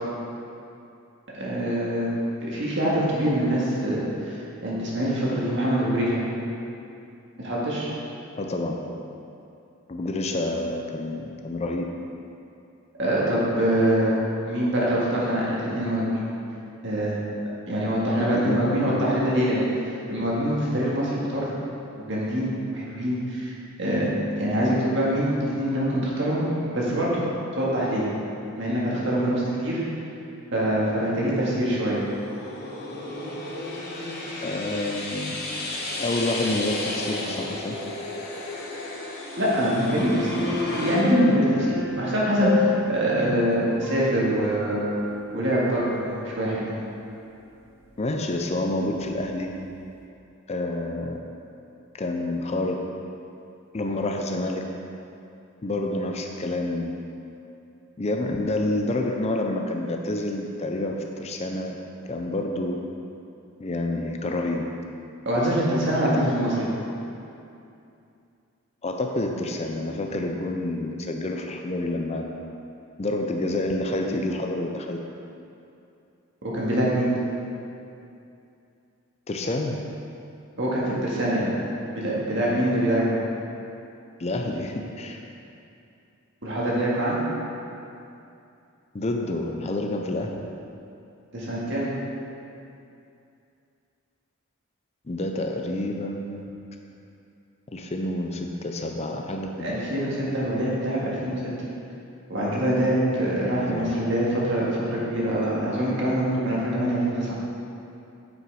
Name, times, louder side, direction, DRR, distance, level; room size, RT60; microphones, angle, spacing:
voice 1, 1.3-2.1 2.4-6.2 7.4-7.9 13.0-14.2 14.5-16.2 16.8-17.2 17.7-19.7 20.1-21.5 21.9-23.5 23.8-24.1 24.4-27.2 27.5-28.1 28.5-29.8 30.5-32.0 39.4-44.9 45.3-46.7 65.3-66.7 76.4-77.1 80.6-81.5 81.9-83.2 86.4-87.2 91.3-91.9 99.6-101.5 102.3-107.4, right 1 dB, 55° right, -6 dB, 1.9 m, -24 dB
voice 2, 8.3-8.8 9.9-11.8 18.3-19.1 34.4-35.4 36.0-37.7 43.2-43.4 48.0-49.5 50.5-51.2 51.9-52.8 53.7-54.6 55.6-56.9 58.0-61.7 62.1-62.8 63.6-64.7 68.8-72.2 73.0-75.0 79.3-79.8 84.2-85.2 88.9-90.4 95.1-96.5 97.7-99.8 103.7-103.9, left 2 dB, 30° left, 2 dB, 0.4 m, -28 dB
sound 1, 30.9-41.0, left 2 dB, 45° left, 1.1 m, -33 dB
sound 2, 39.8-45.2 45.5-45.7, left 3 dB, 10° right, 0.7 m, -31 dB
7.6 x 6.0 x 4.8 m, 2.7 s
head